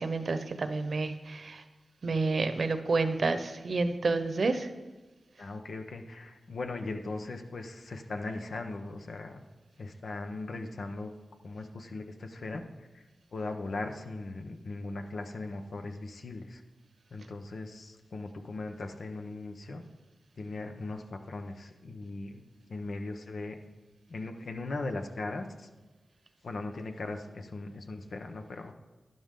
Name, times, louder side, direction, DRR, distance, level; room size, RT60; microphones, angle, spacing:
voice 1, 0.0-1.6 2.0-4.7, right 3 dB, 65° right, 9 dB, 0.9 m, -29 dB
voice 2, 5.4-9.4 9.8-11.1 11.4-13.0 13.3-16.6 17.1-19.9 20.4-22.4 22.7-23.6 24.1-25.7 26.4-28.7, left 2 dB, 75° left, 5 dB, 1.1 m, -39 dB
12.0 x 10.5 x 3.8 m, 1.2 s
cardioid pair, 45°, 0 cm